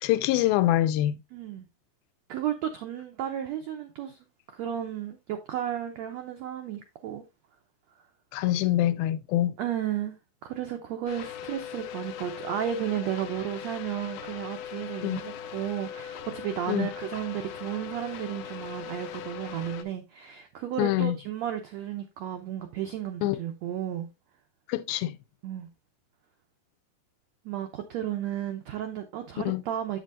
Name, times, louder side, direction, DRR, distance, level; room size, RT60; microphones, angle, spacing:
voice 1, 0.0-1.2 8.3-9.5 15.0-15.2 16.7-16.9 20.8-21.2 23.2-23.4 24.7-25.2 29.5-29.6, left 14 dB, 90° left, 2.5 m, -25 dB
voice 2, 1.3-1.7 2.3-4.2 4.5-7.2 9.6-10.2 10.4-24.1 25.4-25.7 27.4-30.0, right 10 dB, 80° right, 1.5 m, -33 dB
sound 1, 11.1-19.8, left 9 dB, 70° left, 2.1 m, -40 dB
8.1 x 7.5 x 2.5 m
omnidirectional pair, 4.2 m